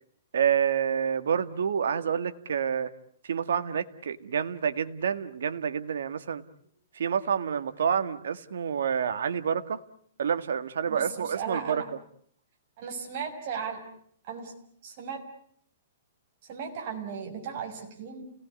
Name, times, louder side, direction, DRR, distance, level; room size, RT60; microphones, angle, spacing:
voice 1, 0.3-2.9 3.2-6.4 7.0-9.8 10.2-11.8, right 7 dB, 80° right, 11 dB, 1.8 m, -28 dB
voice 2, 10.9-11.8 12.8-13.8 14.3-14.5 14.8-15.2 16.5-18.3, right 6 dB, 40° right, 2 dB, 6.2 m, -36 dB
30.0 x 18.5 x 9.5 m, 0.64 s
hypercardioid pair, 165°, 0 cm